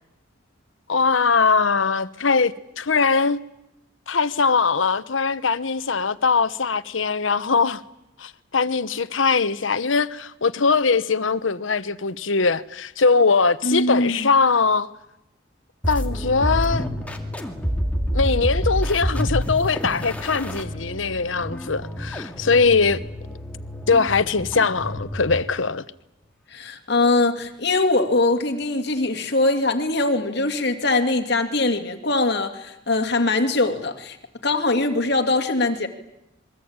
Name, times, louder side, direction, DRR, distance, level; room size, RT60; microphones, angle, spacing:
voice 1, 0.9-3.4 4.1-7.8 8.2-14.9 15.9-16.9 18.1-23.0 23.9-25.8, left 4 dB, 90° left, 1.1 m, -21 dB
voice 2, 13.6-14.3 26.5-34.2 34.4-35.9, left 2 dB, 60° left, 2.6 m, -22 dB
sound 1, 15.8-25.5, equal, 10° left, 2.4 m, -28 dB
27.5 x 22.5 x 8.9 m
head